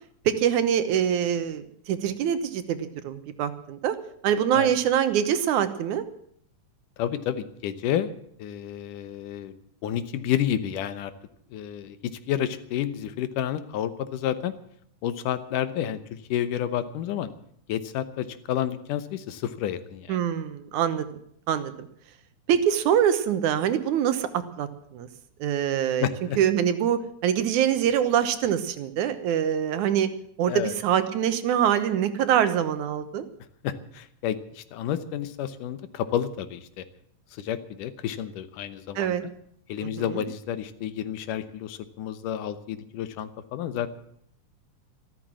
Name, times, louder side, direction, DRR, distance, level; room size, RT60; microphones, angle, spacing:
voice 1, 0.3-4.0 4.2-6.0 20.1-21.1 21.5-21.9 22.5-25.1 25.4-26.1 26.4-30.1 30.4-33.3 39.0-39.2 39.8-40.2, right 9 dB, 75° right, 11 dB, 2.4 m, -24 dB
voice 2, 7.0-8.1 8.4-9.5 9.8-11.1 11.5-14.5 15.0-17.3 17.7-20.2 26.0-26.4 30.5-30.7 33.6-36.8 37.3-39.1 39.7-43.9, left 10 dB, 90° left, 12 dB, 2.6 m, -30 dB
13.5 x 13.0 x 7.5 m, 0.67 s
omnidirectional pair, 3.6 m